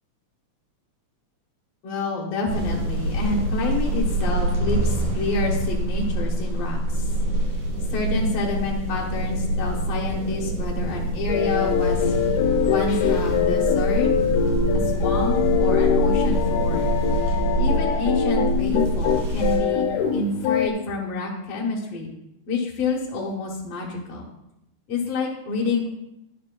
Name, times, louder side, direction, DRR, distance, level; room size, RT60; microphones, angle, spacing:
voice 1, 1.8-7.1 7.9-12.1 12.6-14.1 14.4-14.5 14.8-17.0 17.6-19.9 20.1-22.1 22.5-24.3 24.9-25.9, left 3 dB, 60° left, -3 dB, 2.0 m, -28 dB
sound 1, 2.5-19.6, right 1 dB, 80° right, 3.4 m, -25 dB
sound 2, 11.3-20.7, left 8 dB, 80° left, 2.3 m, -23 dB
11.0 x 11.0 x 2.2 m, 0.85 s
omnidirectional pair, 3.6 m